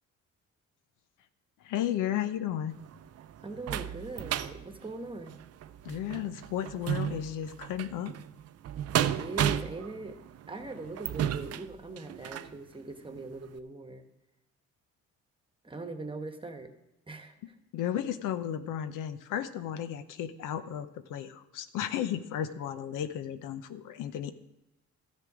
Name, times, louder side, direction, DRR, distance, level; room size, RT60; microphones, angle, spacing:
voice 1, 1.6-2.8 5.8-8.1 17.7-24.3, left 10 dB, 85° left, 11 dB, 0.7 m, -34 dB
sound 1, 2.7-12.6 13.1-13.2 13.6-13.7, right 10 dB, 55° right, 0.5 m, -34 dB
voice 2, 3.4-5.3 9.0-10.2 10.5-14.1 15.6-16.7 17.1-17.5, right 3 dB, 15° right, 6 dB, 1.2 m, -40 dB
13.5 x 6.8 x 4.9 m, 0.94 s
cardioid pair, 90°, 30 cm